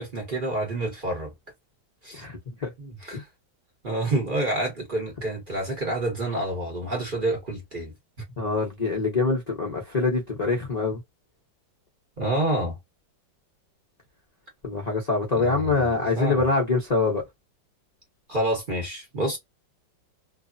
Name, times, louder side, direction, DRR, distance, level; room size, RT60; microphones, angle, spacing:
voice 1, 0.0-1.3 2.0-2.2 2.8-3.3 3.8-7.9 12.2-12.8 15.3-16.4 18.3-19.4, right 1 dB, 35° right, 1.0 m, -28 dB
voice 2, 2.1-2.7 3.1-3.2 8.4-11.0 14.6-17.2, left 3 dB, 45° left, 0.5 m, -25 dB
3.2 x 2.0 x 2.5 m
omnidirectional pair, 2.1 m